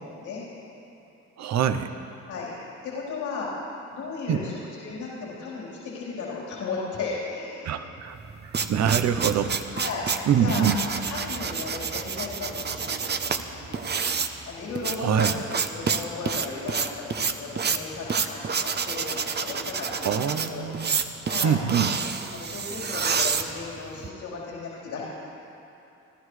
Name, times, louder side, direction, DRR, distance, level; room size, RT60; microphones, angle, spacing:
voice 1, 1.4-1.9 4.3-4.4 7.6-8.2 8.4-9.6 10.3-10.8 15.0-15.4 20.0-21.0 21.4-21.9, right 8 dB, 65° right, 9 dB, 0.9 m, -24 dB
voice 2, 2.8-3.5 3.9-7.8 9.7-10.0 10.4-10.7 11.0-13.8 14.4-16.9 17.2-20.7 21.3-21.6 22.3-25.0, left 4 dB, 80° left, -7 dB, 4.2 m, -35 dB
sound 1, 8.1-24.1, right 5 dB, 35° right, 0.8 m, -28 dB
30.0 x 12.0 x 3.3 m, 2.9 s
cardioid pair, 90°, 30 cm